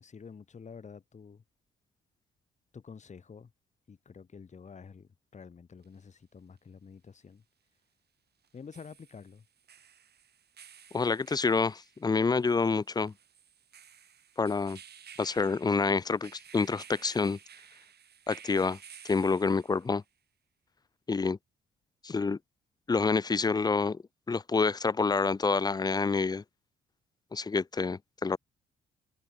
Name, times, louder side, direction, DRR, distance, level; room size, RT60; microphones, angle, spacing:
voice 1, 0.0-1.4 2.7-3.5 3.9-7.4 8.5-9.5, left 5 dB, 35° left, 2.3 m, -49 dB
sound 1, 5.8-5.9 8.4-20.0, right 8 dB, 55° right, 5.3 m, -54 dB
voice 2, 10.9-13.1 14.4-14.8 15.2-17.4 18.3-18.8 19.0-20.0 21.1-21.4 22.0-22.4 22.9-24.0 24.3-26.4 27.3-28.4, left 4 dB, 20° left, 0.5 m, -27 dB
open air
cardioid pair, 90°, 20 cm